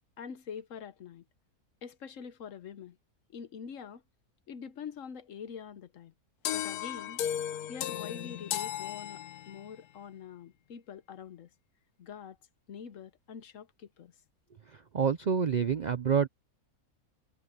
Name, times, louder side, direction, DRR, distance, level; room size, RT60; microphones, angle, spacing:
voice 1, 0.2-1.2 1.8-3.0 3.3-4.0 4.5-6.1 6.5-7.2 7.7-11.5 12.0-12.4 12.7-14.1, left 7 dB, 60° left, 1.2 m, -45 dB
sound 1, 6.5-9.7, left 10 dB, 85° left, 1.3 m, -35 dB
voice 2, 14.7-16.3, right 7 dB, 60° right, 0.4 m, -28 dB
omnidirectional pair, 1.6 m